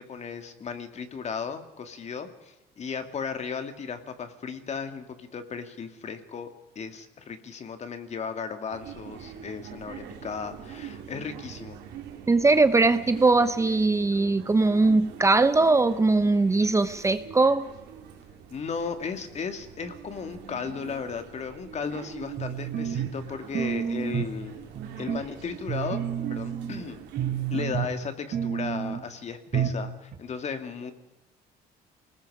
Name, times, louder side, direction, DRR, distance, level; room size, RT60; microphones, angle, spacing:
voice 1, 0.0-6.5 6.8-11.8 18.5-24.5 25.0-26.0 26.3-27.0 27.5-30.9, left 6 dB, 40° left, 8 dB, 2.4 m, -35 dB
sound 1, 8.7-27.6, right 8 dB, 90° right, 3.4 m, -44 dB
voice 2, 12.3-17.7, right 3 dB, 15° right, 11 dB, 0.8 m, -21 dB
sound 2, 22.4-23.2 23.5-24.4 24.7-25.2 25.7-26.8 27.2-28.0 28.3-29.0 29.5-29.9 30.1-30.2, right 8 dB, 55° right, 4.8 m, -30 dB
28.0 x 19.5 x 4.9 m, 0.98 s
cardioid pair, 110°, 17 cm